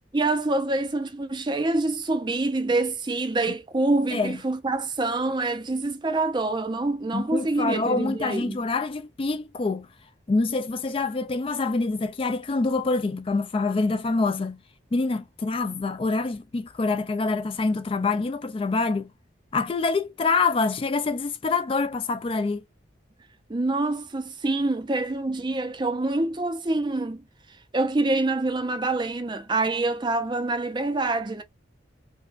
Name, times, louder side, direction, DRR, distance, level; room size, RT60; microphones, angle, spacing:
voice 1, 0.1-8.6 23.5-27.2 27.7-31.4, right 2 dB, 25° right, 0.5 m, -26 dB
voice 2, 7.1-9.9 10.3-14.6 14.9-19.1 19.5-22.6, left 3 dB, 30° left, 0.4 m, -26 dB
4.4 x 2.2 x 2.4 m
head